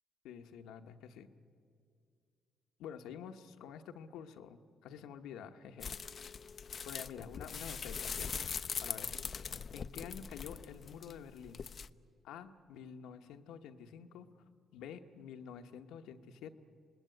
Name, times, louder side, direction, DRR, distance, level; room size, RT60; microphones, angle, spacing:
voice 1, 0.2-1.3 2.8-6.2 6.8-8.3 8.8-9.2 9.7-11.6 12.2-14.3 14.7-16.5, left 8 dB, 90° left, 7 dB, 1.1 m, -48 dB
sound 1, 5.8-11.9, left 6 dB, 45° left, 0.5 m, -41 dB
27.0 x 19.5 x 9.3 m, 2.4 s
cardioid pair, 90°, 0 cm